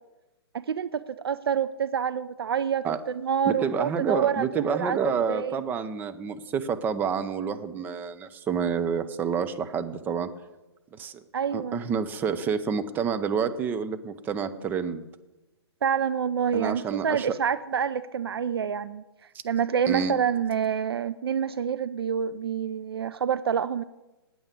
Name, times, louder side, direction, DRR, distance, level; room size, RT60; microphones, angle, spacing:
voice 1, 0.5-2.9 3.2-5.6 11.3-11.8 15.8-19.0 19.4-23.8, right 7 dB, 65° right, 14 dB, 0.4 m, -27 dB
voice 2, 3.4-10.3 10.9-11.2 11.5-15.0 16.5-17.3 19.9-20.2, right 6 dB, 15° right, 9 dB, 0.5 m, -28 dB
8.7 x 8.7 x 8.3 m, 1.0 s
figure-of-eight pair, 125°, 14 cm